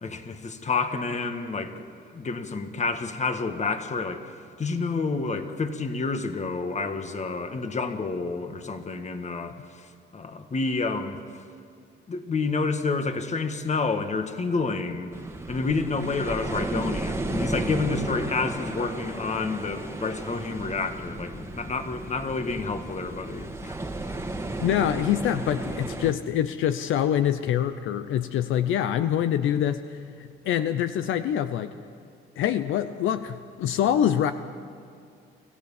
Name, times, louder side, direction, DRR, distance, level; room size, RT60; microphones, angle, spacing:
voice 1, 0.0-1.9 2.1-11.4 12.1-15.1 15.5-24.1, left 4 dB, 35° left, 8 dB, 1.7 m, -29 dB
sound 1, 15.1-26.1, right 2 dB, 15° right, 1.7 m, -33 dB
voice 2, 24.6-31.7 32.4-34.3, left 10 dB, 80° left, 10 dB, 0.8 m, -25 dB
25.0 x 15.5 x 7.2 m, 2.3 s
cardioid pair, 90°, 20 cm